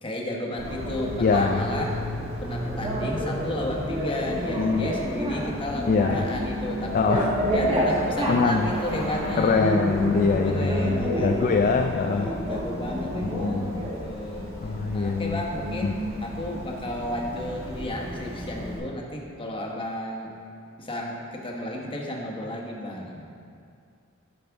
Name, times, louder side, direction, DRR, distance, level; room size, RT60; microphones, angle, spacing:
voice 1, 0.0-2.0 2.4-9.8 10.3-14.5 14.9-20.3 20.8-23.3, left 1 dB, 25° left, -1 dB, 1.0 m, -33 dB
Bicycle, 0.6-18.8, equal, 30° right, 1.7 m, -30 dB
voice 2, 1.2-1.6 4.6-4.9 5.9-6.2 6.9-7.3 8.3-8.7 9.4-12.3 13.2-13.9 14.6-15.4 15.8-16.0, left 4 dB, 40° left, 4 dB, 0.3 m, -24 dB
10.5 x 6.4 x 3.5 m, 2.4 s
head